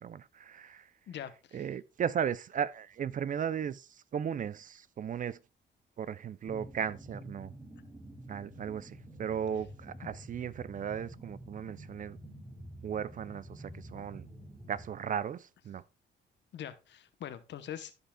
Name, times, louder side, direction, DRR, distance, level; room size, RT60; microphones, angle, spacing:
voice 1, 0.0-0.9 1.5-5.4 6.0-7.5 8.3-12.2 12.8-14.3 14.7-15.8, right 8 dB, 40° right, 0.4 m, -36 dB
voice 2, 1.1-1.6 10.0-10.1 16.5-17.9, left 10 dB, 65° left, 0.9 m, -43 dB
sound 1, 6.4-14.9, right 1 dB, 10° right, 2.3 m, -49 dB
14.5 x 5.5 x 2.3 m
cardioid pair, 90°, 20 cm